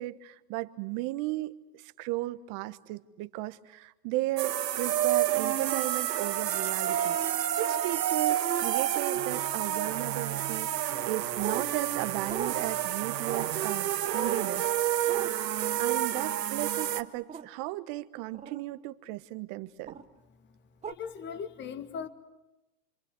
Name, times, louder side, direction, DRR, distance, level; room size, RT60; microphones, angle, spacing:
voice 1, 0.0-14.7 15.0-15.2 15.8-20.0, right 18 dB, 40° right, 1.2 m, -35 dB
sound 1, 4.4-17.0, right 11 dB, 80° right, 1.5 m, -29 dB
sound 2, 11.4-11.7 12.3-12.5 13.3-13.5 14.1-14.5 15.1-15.3 17.3-17.5 18.3-18.6 19.9-20.0 20.8-20.9, right 7 dB, 15° right, 1.1 m, -35 dB
voice 2, 20.9-22.1, left 7 dB, 20° left, 1.7 m, -38 dB
27.0 x 26.0 x 8.1 m
hypercardioid pair, 125°, 48 cm